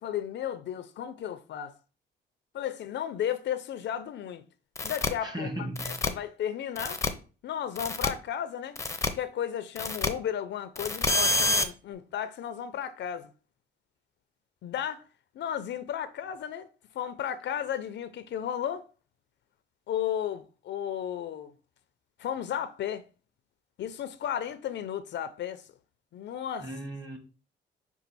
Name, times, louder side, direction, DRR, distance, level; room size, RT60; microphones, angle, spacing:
voice 1, 0.0-1.7 2.5-4.4 4.8-5.5 5.8-7.0 7.4-8.8 9.1-13.3 14.6-15.0 15.3-16.7 16.9-18.8 19.9-21.5 22.2-23.0 23.8-25.6 26.1-26.7, left 9 dB, 65° left, 0.5 m, -34 dB
sound 1, 4.8-5.1 5.8-6.1 6.8-7.1 7.8-8.1 8.8-9.1 9.8-10.1 10.8-11.6, left 2 dB, 15° left, 0.6 m, -27 dB
voice 2, 5.2-6.1 26.6-27.2, right 1 dB, 20° right, 1.3 m, -36 dB
5.4 x 2.4 x 4.0 m
cardioid pair, 90°, 20 cm